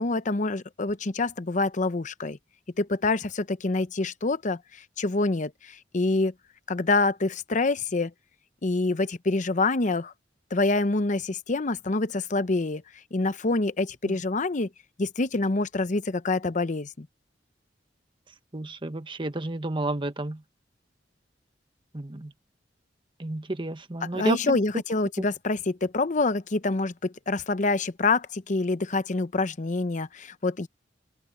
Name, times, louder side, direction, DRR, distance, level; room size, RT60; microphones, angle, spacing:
voice 1, 0.0-2.4 2.8-6.3 6.7-8.1 8.6-10.1 10.5-12.8 13.1-14.7 15.0-17.1 24.1-30.7, left 3 dB, 45° left, 0.8 m, -26 dB
voice 2, 18.5-20.4 21.9-22.3 23.2-24.6 25.2-25.3, right 1 dB, 30° right, 1.2 m, -31 dB
open air
head